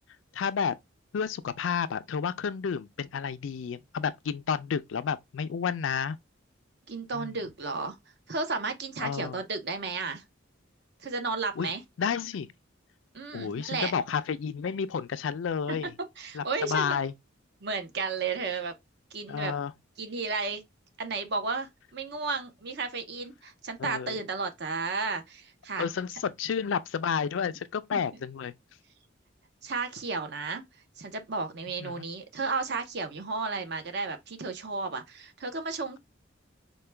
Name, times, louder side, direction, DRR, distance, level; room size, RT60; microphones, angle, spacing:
voice 1, 0.3-0.7 1.1-6.2 7.1-7.3 9.0-9.4 11.6-11.7 12.0-12.5 13.3-15.9 16.3-17.1 19.3-19.7 23.8-24.2 25.8-28.5 31.8-32.1, left 6 dB, 75° left, 0.4 m, -31 dB
voice 2, 6.9-8.0 8.3-10.2 11.0-11.8 13.1-13.9 15.7-15.8 16.2-17.0 17.6-18.7 19.1-19.5 20.0-20.6 21.0-25.9 27.9-28.0 29.6-30.7 31.0-36.0, right 4 dB, 55° right, 0.7 m, -33 dB
4.5 x 2.2 x 3.2 m
head